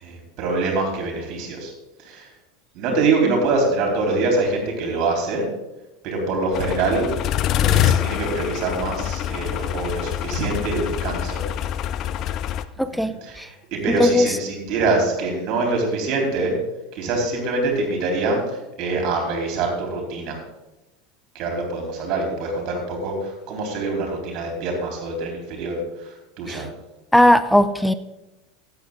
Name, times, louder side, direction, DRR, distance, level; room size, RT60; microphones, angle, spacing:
voice 1, 0.0-1.7 2.0-2.3 2.7-5.5 6.0-7.1 7.6-11.4 12.9-16.6 16.9-20.4 21.3-26.7, right 3 dB, 45° right, 1 dB, 3.9 m, -24 dB
sound 1, 6.5-12.6, left 11 dB, 45° left, 0.5 m, -25 dB
voice 2, 12.8-13.5 13.9-14.3 26.5-26.6 27.1-27.9, left 1 dB, ahead, 12 dB, 0.6 m, -18 dB
13.0 x 9.3 x 3.8 m, 0.98 s
figure-of-eight pair, 80°, 0 cm